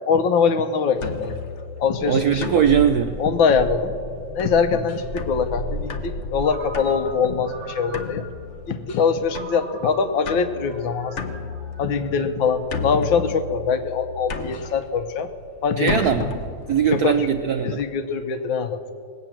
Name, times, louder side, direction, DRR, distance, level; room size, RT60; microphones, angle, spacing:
voice 1, 0.1-1.4 1.8-2.6 3.2-3.9 4.4-8.3 8.7-11.1 11.8-15.3 15.6-15.9 17.0-17.3 17.6-18.9, left 5 dB, 75° left, 9 dB, 1.5 m, -23 dB
sound 1, 1.0-17.8, left 3 dB, 55° left, 0.8 m, -34 dB
sound 2, 1.8-8.1, left 2 dB, 30° left, 1.8 m, -41 dB
voice 2, 2.0-3.2 15.8-16.3 16.7-17.8, right 8 dB, 75° right, 7 dB, 0.8 m, -20 dB
Ringtone, 6.4-8.5 9.3-12.6, right 2 dB, 20° right, 4.9 m, -42 dB
19.5 x 8.4 x 7.4 m, 2.5 s
omnidirectional pair, 2.2 m